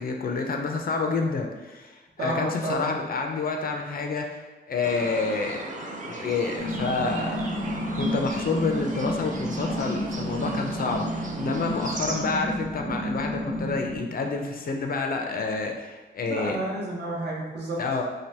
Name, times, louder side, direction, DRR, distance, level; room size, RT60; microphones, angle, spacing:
voice 1, 0.0-5.6 5.9-7.4 7.9-16.6 17.8-18.0, left 4 dB, 50° left, 3 dB, 0.4 m, -28 dB
voice 2, 2.2-2.9 16.2-17.8, right 2 dB, 65° right, -4 dB, 0.8 m, -30 dB
sound 1, 4.8-12.2, right 2 dB, 45° right, 0.5 m, -37 dB
sound 2, 6.6-14.0, equal, 85° right, 1.0 m, -31 dB
2.7 x 2.5 x 3.2 m, 1.2 s
wide cardioid pair, 95°, 19 cm